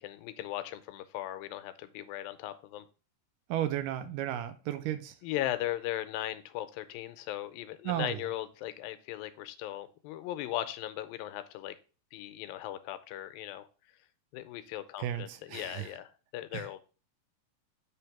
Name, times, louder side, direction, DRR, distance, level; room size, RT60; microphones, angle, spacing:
voice 1, 0.0-2.8 5.2-11.8 12.1-13.7 14.3-16.8, left 13 dB, 90° left, 2.4 m, -38 dB
voice 2, 3.5-5.2 7.8-8.3 15.0-16.0 16.5-16.7, right 11 dB, 80° right, 2.1 m, -34 dB
7.8 x 3.4 x 5.8 m
omnidirectional pair, 4.1 m